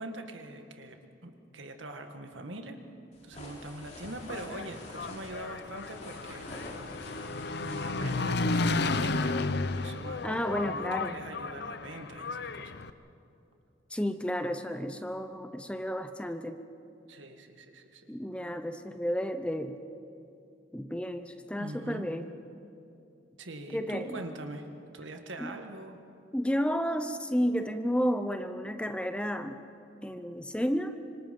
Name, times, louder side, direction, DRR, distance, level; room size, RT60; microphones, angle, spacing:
voice 1, 0.0-2.8 3.2-6.9 7.6-12.8 17.1-18.1 21.6-22.1 23.4-24.7 24.9-26.0, right 1 dB, 80° right, 5 dB, 1.8 m, -43 dB
sound 1, 3.1-9.0, left 1 dB, 35° left, 3.6 m, -47 dB
Engine, 4.1-12.9, left 3 dB, 60° left, 0.7 m, -33 dB
voice 2, 10.2-11.2 13.9-16.6 18.1-19.8 20.7-22.3 23.7-24.1 25.4-25.5 26.3-29.6 30.0-31.0, equal, 5° left, 8 dB, 0.7 m, -32 dB
26.0 x 24.5 x 5.4 m, 2.7 s
head